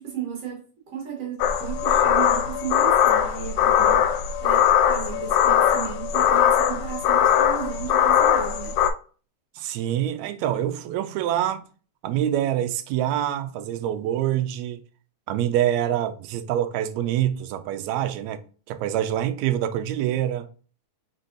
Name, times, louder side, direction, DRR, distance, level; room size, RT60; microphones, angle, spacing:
voice 1, 0.0-8.8, right 8 dB, 60° right, 2.1 m, -35 dB
sound 1, 1.4-8.9, left 9 dB, 80° left, 1.9 m, -20 dB
voice 2, 9.6-11.6 12.0-14.8 15.3-18.4 18.7-20.5, right 11 dB, 80° right, 1.7 m, -25 dB
4.4 x 4.0 x 2.5 m
omnidirectional pair, 3.5 m